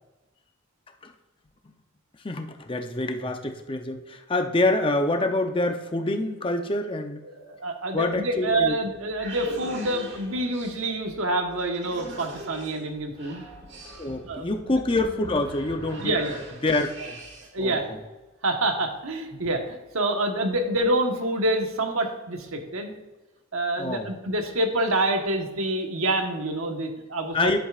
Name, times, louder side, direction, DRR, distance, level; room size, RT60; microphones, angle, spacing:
voice 1, 2.2-7.2 7.9-8.8 14.0-16.2 16.6-16.9 17.6-18.0 19.3-19.4 23.8-24.1 27.3-27.6, left 2 dB, 25° left, 6 dB, 0.6 m, -26 dB
voice 2, 7.3-13.4 14.1-14.5 16.0-16.4 17.0-17.1 17.5-17.9 18.4-22.9 23.5-27.6, right 1 dB, 90° right, 4 dB, 1.2 m, -27 dB
sound 1, 8.8-17.6, right 1 dB, 55° right, 1.6 m, -41 dB
10.0 x 8.1 x 2.4 m, 1.1 s
head